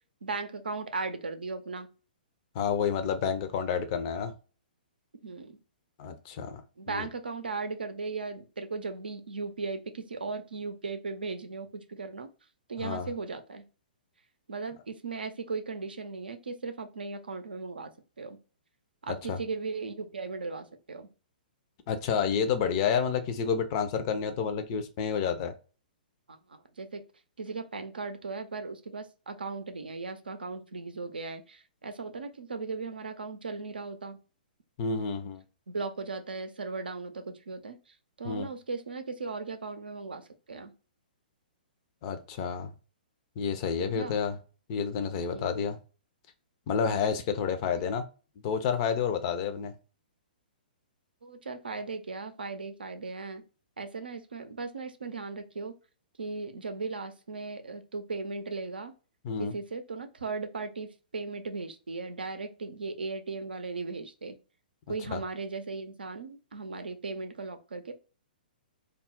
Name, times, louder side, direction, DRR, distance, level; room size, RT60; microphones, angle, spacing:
voice 1, 0.2-1.9 5.2-5.6 6.8-12.3 12.7-13.6 14.5-17.9 18.2-18.4 19.0-21.1 26.3-27.0 27.4-34.2 35.7-40.7 43.8-44.2 45.3-45.6 47.8-47.9 51.2-53.4 53.8-55.7 56.2-58.9 59.4-64.4 64.9-67.9, right 4 dB, 80° right, 8 dB, 0.5 m, -37 dB
voice 2, 2.5-4.3 6.0-6.6 6.9-7.1 12.8-13.1 19.1-19.4 21.9-25.5 34.8-35.4 38.2-38.5 42.0-42.7 43.4-44.4 44.7-45.8 46.7-48.0 48.4-49.7 59.2-59.5 65.1-65.2, left 6 dB, 40° left, 8 dB, 0.5 m, -29 dB
2.3 x 2.0 x 3.7 m, 0.34 s
figure-of-eight pair, 120°, 5 cm